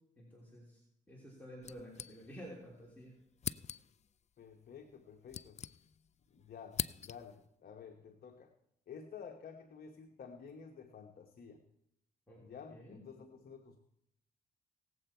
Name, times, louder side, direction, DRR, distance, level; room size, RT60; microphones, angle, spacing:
voice 1, 0.2-0.8 1.1-3.2 12.3-12.4 12.7-13.0, equal, 10° left, -4 dB, 3.3 m, -51 dB
sound 1, 1.6-2.6 2.9-3.0 3.4-4.1 4.9-6.2 6.4-7.4, left 8 dB, 40° left, 0.4 m, -43 dB
voice 2, 4.4-5.6 6.3-8.5 8.9-11.6 12.4-13.8, left 6 dB, 55° left, 4 dB, 1.0 m, -51 dB
17.5 x 7.8 x 4.4 m, 0.78 s
cardioid pair, 65°, 18 cm